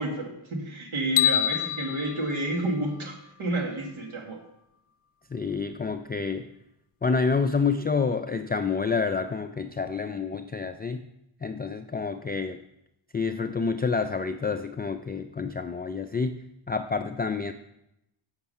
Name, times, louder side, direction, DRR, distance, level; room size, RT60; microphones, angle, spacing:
voice 1, 0.0-4.4, right 1 dB, 75° right, 2 dB, 1.9 m, -30 dB
sound 1, 1.2-3.4, left 10 dB, 90° left, 0.6 m, -27 dB
voice 2, 5.3-6.5 7.0-11.0 11.4-12.6 13.1-16.4 16.7-17.5, left 4 dB, 20° left, 8 dB, 0.3 m, -28 dB
7.2 x 6.9 x 5.4 m, 0.85 s
cardioid pair, 70°, 50 cm